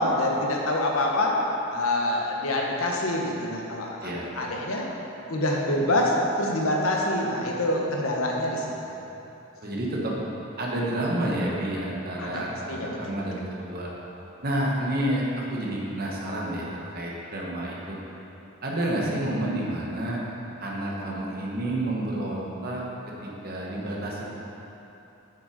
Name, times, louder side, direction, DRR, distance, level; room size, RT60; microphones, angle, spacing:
voice 1, 0.0-1.4 1.7-4.0 4.4-4.9 5.3-8.6 12.2-12.4 12.7-13.0, left 1 dB, 85° left, -1 dB, 1.2 m, -25 dB
voice 2, 9.6-10.2 10.6-13.9 14.4-18.0 18.6-20.2 20.6-22.8 23.2-24.3, right 1 dB, 45° right, -3 dB, 1.3 m, -29 dB
7.4 x 6.4 x 5.2 m, 3.0 s
head